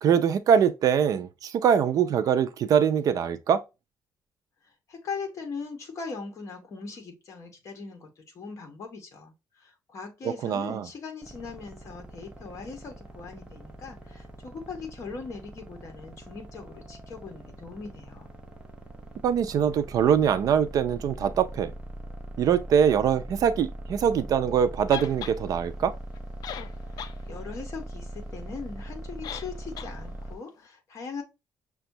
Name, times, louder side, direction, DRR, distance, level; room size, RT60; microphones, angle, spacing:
voice 1, 0.0-3.6 10.4-10.9 19.2-21.7 22.4-25.9, right 8 dB, 50° right, 0.4 m, -23 dB
voice 2, 4.9-18.3 27.3-31.2, left 4 dB, 40° left, 1.0 m, -40 dB
sound 1, 11.2-30.4, right 1 dB, 15° right, 0.6 m, -41 dB
sound 2, 24.9-25.4 26.2-26.3 26.4-27.2 27.5-27.6 29.2-29.5 29.8-29.9, left 9 dB, 55° left, 0.3 m, -37 dB
5.9 x 2.3 x 2.6 m
cardioid pair, 180°, 8 cm